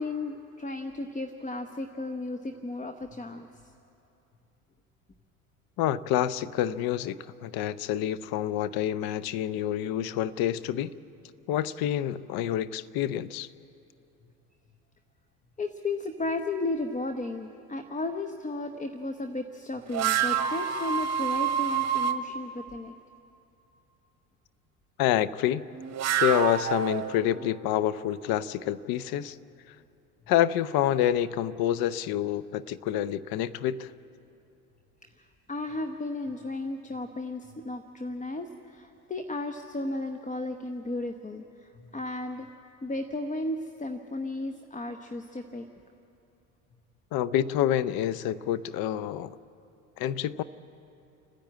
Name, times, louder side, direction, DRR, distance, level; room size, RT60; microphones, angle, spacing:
voice 1, 0.0-3.7 15.6-22.9 35.0-42.5 42.8-45.6, left 2 dB, 15° left, 6 dB, 1.0 m, -34 dB
voice 2, 5.8-10.9 11.5-13.5 25.0-25.7 26.2-29.4 30.3-33.9 47.1-49.3 50.0-50.4, left 11 dB, 55° left, 16 dB, 0.8 m, -27 dB
sound 1, 19.9-22.2 25.7-27.4, right 9 dB, 40° right, 1.3 m, -27 dB
29.5 x 10.5 x 8.7 m, 2.8 s
hypercardioid pair, 70°, 43 cm